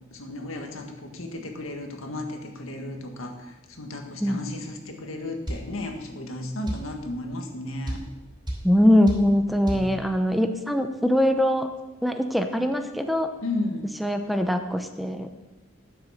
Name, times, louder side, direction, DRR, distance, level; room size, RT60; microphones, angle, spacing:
voice 1, 0.1-8.0 9.4-9.9 13.4-13.9, left 2 dB, 85° left, 3 dB, 1.7 m, -34 dB
sound 1, 5.5-5.7 6.7-6.9 7.9-8.1 8.5-8.7 9.1-9.3 9.7-9.9, right 1 dB, 25° right, 2.9 m, -30 dB
voice 2, 8.6-11.7 12.0-13.3 14.0-15.3, equal, ahead, 6 dB, 0.6 m, -22 dB
10.5 x 7.3 x 6.4 m, 1.1 s
head